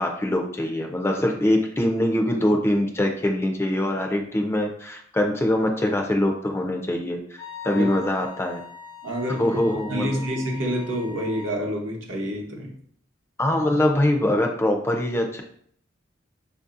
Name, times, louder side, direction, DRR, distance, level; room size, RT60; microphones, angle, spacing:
voice 1, 0.0-7.4 7.6-8.6 9.4-10.2 13.4-15.4, left 1 dB, 15° left, 2 dB, 0.3 m, -23 dB
Wind instrument woodwind instrument, 7.4-11.6, left 6 dB, 80° left, 0.7 m, -41 dB
voice 2, 9.0-9.6 9.9-12.7, equal, 75° right, 0 dB, 0.8 m, -28 dB
4.6 x 2.6 x 2.4 m, 0.63 s
head